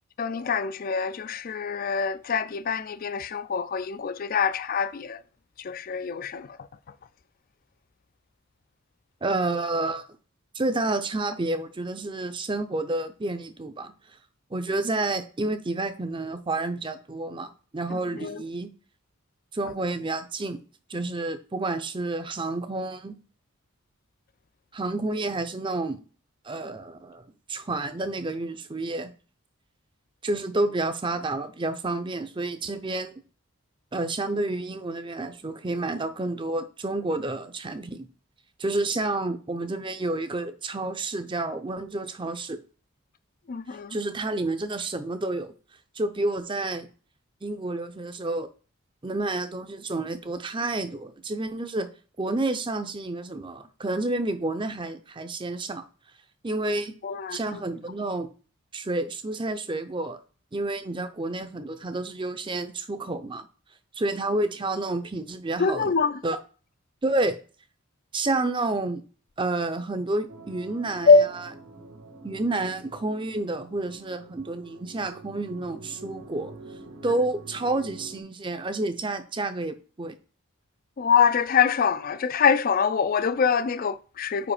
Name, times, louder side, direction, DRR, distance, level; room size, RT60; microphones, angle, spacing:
voice 1, 0.2-5.2 5.6-6.6 17.9-18.4 43.5-44.0 57.0-57.4 65.6-66.2 71.1-71.3 81.0-84.5, left 5 dB, 40° left, 0.4 m, -24 dB
voice 2, 9.2-10.1 10.5-13.9 14.5-18.7 19.5-20.6 20.9-23.1 24.7-26.0 26.4-27.2 27.5-29.1 30.2-33.1 33.9-38.1 38.6-42.6 43.9-45.5 46.0-46.9 47.4-48.5 49.0-51.9 52.2-55.8 56.4-56.9 57.3-58.3 58.7-60.2 60.5-63.5 63.9-65.9 66.2-66.4 67.0-67.3 68.1-69.0 69.4-71.5 72.2-76.5 77.0-80.1, right 2 dB, 20° right, 0.6 m, -29 dB
sound 1, 70.3-78.2, right 3 dB, 70° right, 1.5 m, -46 dB
5.0 x 5.0 x 4.9 m
head